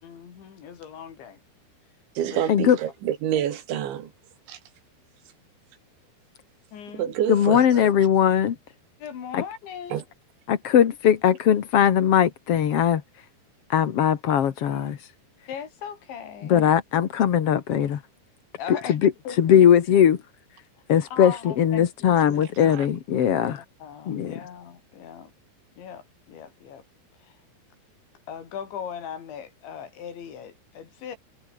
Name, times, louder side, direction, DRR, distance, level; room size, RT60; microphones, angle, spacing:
voice 1, 0.0-1.4 2.3-2.5 6.7-7.2 9.0-10.0 15.5-16.8 18.6-19.0 19.2-19.4 21.1-22.4 23.4-25.3 25.8-26.8 27.2-27.4 28.3-31.2, left 8 dB, 85° left, 6.1 m, -39 dB
voice 2, 2.2-4.1 4.5-4.6 6.9-7.9 9.9-10.0 22.6-22.9, right 10 dB, 85° right, 4.8 m, -28 dB
voice 3, 7.3-8.5 9.3-9.4 10.5-13.0 13.7-15.0 16.5-18.0 18.7-19.1 19.4-20.2 20.9-23.6 24.1-24.3, left 9 dB, 60° left, 1.5 m, -20 dB
omnidirectional pair, 5.1 m